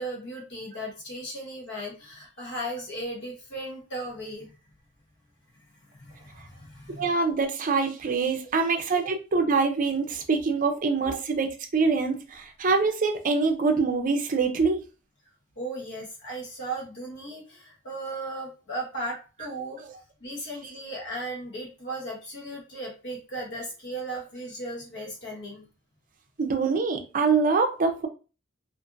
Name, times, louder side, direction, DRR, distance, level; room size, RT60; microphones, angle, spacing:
voice 1, 0.0-4.5 5.9-7.1 9.0-9.1 11.1-11.2 15.6-19.8 20.2-25.7, right 1 dB, 60° left, 0.9 m, -36 dB
voice 2, 7.0-11.5 11.7-14.8 26.4-28.1, right 4 dB, 40° right, 0.5 m, -24 dB
2.5 x 2.5 x 2.5 m
head